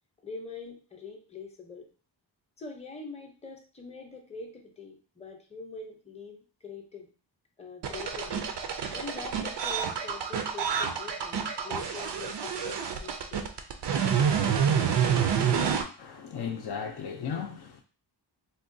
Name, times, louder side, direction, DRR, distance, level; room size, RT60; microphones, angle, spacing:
voice 1, 0.2-1.9 2.6-7.1 7.6-8.5 8.9-13.5, left 4 dB, 15° left, 0.6 m, -43 dB
sound 1, 7.8-15.8, right 7 dB, 65° right, 0.5 m, -28 dB
voice 2, 16.0-17.8, left 7 dB, 60° left, 0.5 m, -36 dB
3.6 x 2.2 x 2.6 m
wide cardioid pair, 115°, 45 cm